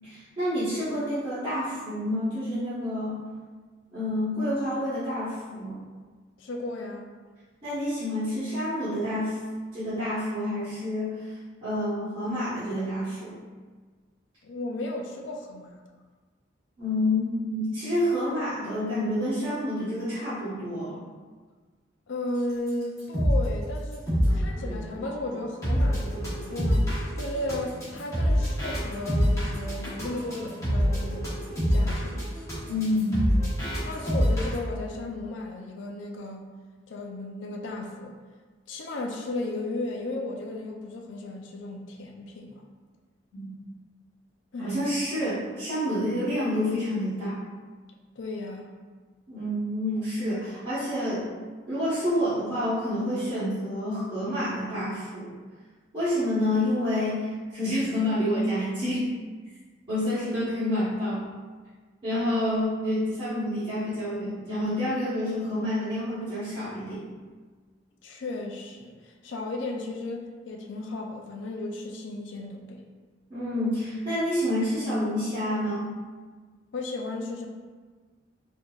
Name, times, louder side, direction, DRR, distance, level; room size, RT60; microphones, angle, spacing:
voice 1, 0.0-3.2 3.9-5.8 7.6-9.4 9.7-11.4 11.6-13.3 16.8-21.0 32.7-33.2 43.3-43.5 44.6-47.4 49.3-51.2 51.7-55.3 55.9-59.1 59.9-61.3 62.0-67.1 73.3-75.9, left 1 dB, 25° right, -16 dB, 1.4 m, -28 dB
voice 2, 6.4-7.1 14.4-15.7 22.1-24.1 24.3-26.9 27.2-31.3 31.7-32.2 33.8-36.4 36.9-38.1 38.7-42.6 44.5-44.7 45.9-46.0 48.2-48.7 62.1-62.4 68.0-72.8 76.7-77.5, left 2 dB, 75° left, 2 dB, 0.5 m, -35 dB
sound 1, 22.7-22.8 23.0-23.5 23.9-34.6, equal, 15° left, 1.1 m, -26 dB
4.5 x 2.7 x 2.4 m, 1.4 s
head